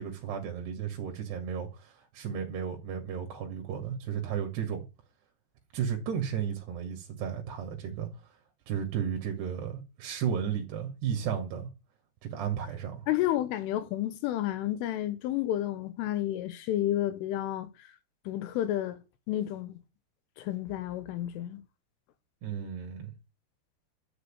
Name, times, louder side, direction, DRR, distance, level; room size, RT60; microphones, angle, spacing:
voice 1, 0.0-4.8 5.7-8.1 8.7-11.7 12.2-13.1 22.4-23.1, right 8 dB, 60° right, 4.1 m, -34 dB
voice 2, 13.1-17.7 18.3-19.0 19.3-19.8 20.4-21.6, left 13 dB, 80° left, 3.7 m, -31 dB
11.5 x 7.3 x 8.8 m
omnidirectional pair, 5.7 m